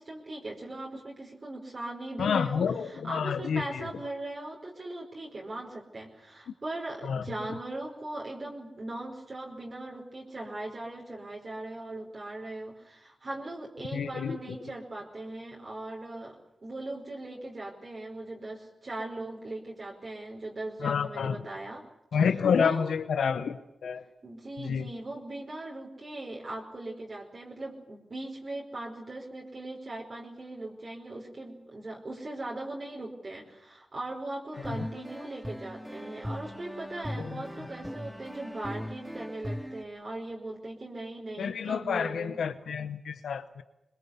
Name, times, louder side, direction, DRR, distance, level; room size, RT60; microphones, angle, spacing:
voice 1, 0.0-16.4 16.6-21.8 22.1-23.0 24.2-42.4, right 2 dB, 50° right, 4.9 m, -39 dB
voice 2, 2.2-3.9 7.1-7.2 13.9-14.4 20.8-21.4 22.1-23.6 23.8-24.0 24.6-24.8 41.4-43.6, left 6 dB, 85° left, 0.8 m, -28 dB
sound 1, 34.5-39.8, equal, 5° right, 2.5 m, -39 dB
22.5 x 20.5 x 8.3 m
supercardioid pair, 40°, 0 cm